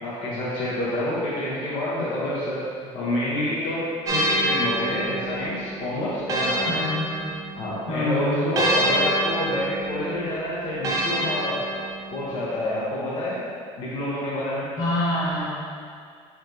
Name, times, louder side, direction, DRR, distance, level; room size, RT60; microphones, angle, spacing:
voice 1, 0.0-2.6 2.9-6.8 7.6-11.6 12.1-13.4 13.8-14.7, left 1 dB, 40° left, -8 dB, 0.8 m, -28 dB
sound 1, 4.0-7.8 8.5-12.2, right 1 dB, 25° right, 0.6 m, -27 dB
voice 2, 6.7-7.0 7.9-8.4 14.8-15.5, left 1 dB, 75° left, -8 dB, 1.5 m, -26 dB
4.5 x 4.4 x 2.6 m, 2.2 s
cardioid pair, 175°, 13 cm